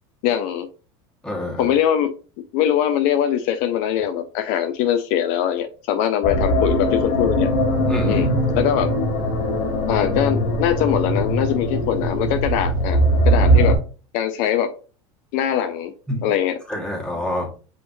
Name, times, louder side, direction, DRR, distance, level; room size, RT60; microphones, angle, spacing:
voice 1, 0.2-0.7 1.6-2.1 2.5-7.5 8.1-8.3 8.5-8.9 9.9-13.0 13.3-13.8 14.1-14.7 15.3-15.9 16.2-16.6, left 10 dB, 60° left, 9 dB, 0.4 m, -22 dB
voice 2, 1.2-1.7 7.9-8.3 16.1-16.3 16.7-17.5, left 1 dB, 5° left, -1 dB, 1.5 m, -27 dB
sound 1, 6.2-13.8, right 1 dB, 75° left, 1.2 m, -20 dB
5.5 x 3.0 x 2.6 m, 0.36 s
supercardioid pair, 120°, 15 cm